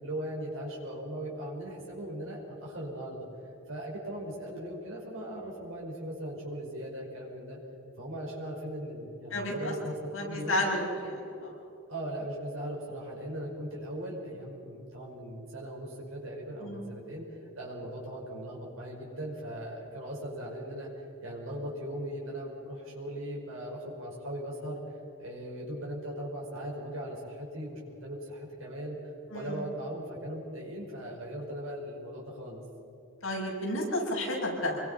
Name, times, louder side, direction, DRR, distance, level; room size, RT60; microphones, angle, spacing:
voice 1, 0.0-3.3 3.7-7.6 8.0-10.6 11.9-17.2 17.6-24.8 25.2-32.6, right 1 dB, 85° right, -3 dB, 5.6 m, -39 dB
voice 2, 9.3-9.7 10.1-11.5 16.6-16.9 29.3-29.7 33.2-34.8, left 1 dB, 85° left, -3 dB, 7.1 m, -32 dB
26.0 x 22.5 x 5.9 m, 2.8 s
head